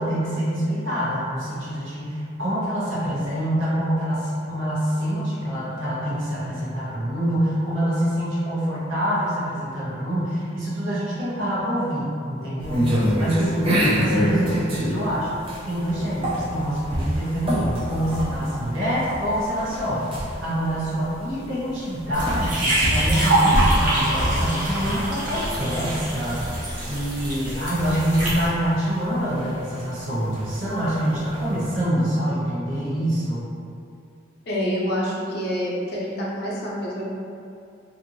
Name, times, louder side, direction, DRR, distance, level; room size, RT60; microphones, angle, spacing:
voice 1, 0.0-12.9 13.2-15.4 15.6-33.4, equal, 70° right, -9 dB, 0.9 m, -26 dB
sound 1, 12.6-31.8, equal, 25° right, 0.4 m, -27 dB
sound 2, 22.1-28.5, right 1 dB, 40° right, 0.8 m, -25 dB
voice 2, 34.5-37.1, equal, 50° left, -6 dB, 0.6 m, -27 dB
2.6 x 2.6 x 2.6 m, 2.5 s
head